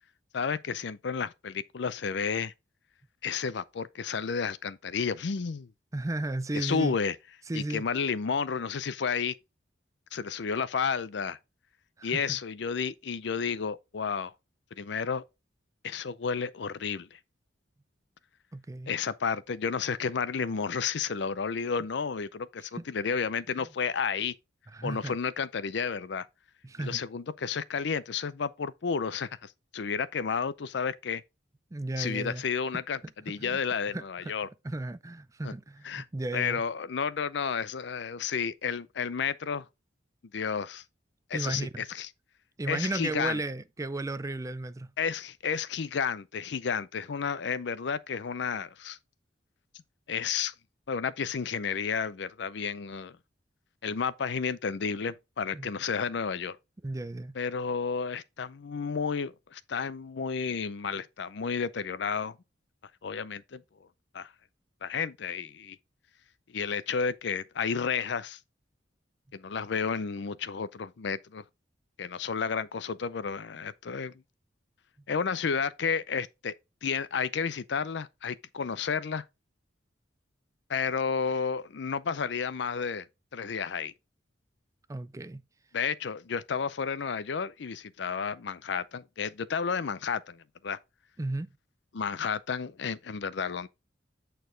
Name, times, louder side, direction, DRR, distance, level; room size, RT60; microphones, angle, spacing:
voice 1, 0.3-2.5 3.2-5.7 6.5-7.2 7.5-9.3 10.1-11.4 12.0-14.3 14.8-15.2 15.8-17.2 18.9-24.3 24.8-26.3 26.8-31.2 32.0-33.0 33.3-34.5 35.4-35.5 35.8-36.1 36.3-39.7 40.3-40.8 41.3-42.1 42.7-43.4 45.0-49.0 50.1-50.5 50.9-53.2 53.8-56.6 57.4-62.4 63.0-63.6 64.1-64.3 64.8-65.8 66.5-68.4 69.3-71.4 72.0-74.1 75.1-76.5 76.8-79.2 80.7-83.1 83.3-83.9 85.7-90.8 91.9-93.7, left 6 dB, 65° left, 0.5 m, -31 dB
voice 2, 5.9-7.0 7.5-7.8 12.0-12.4 18.5-18.9 22.8-22.9 23.6-23.7 24.7-25.2 26.6-27.0 31.7-32.4 33.4-33.6 33.9-34.3 34.6-36.6 41.3-41.8 42.6-44.9 55.5-55.7 56.8-57.4 84.9-85.4 91.2-91.5, right 2 dB, 15° right, 0.4 m, -34 dB
8.4 x 4.5 x 3.8 m
head